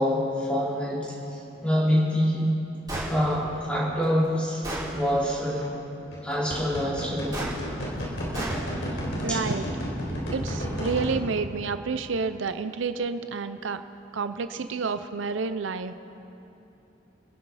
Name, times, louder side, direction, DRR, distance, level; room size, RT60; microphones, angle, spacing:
voice 1, 0.0-2.4 3.1-4.6 4.9-5.6 6.2-7.4 9.3-9.4, equal, 5° left, -9 dB, 4.4 m, -26 dB
sound 1, 2.9-3.1 5.4-5.6 6.1-11.2, equal, 80° left, 4.0 m, -31 dB
Gunshot gunfire, 2.9-3.1 4.0-4.1 4.6-4.9 7.3-7.5 8.3-8.6, right 1 dB, 20° right, 4.7 m, -32 dB
voice 2, 9.2-9.7 10.3-13.8 14.1-15.9, right 4 dB, 80° right, 10 dB, 0.6 m, -29 dB
28.0 x 11.0 x 4.1 m, 2.9 s
head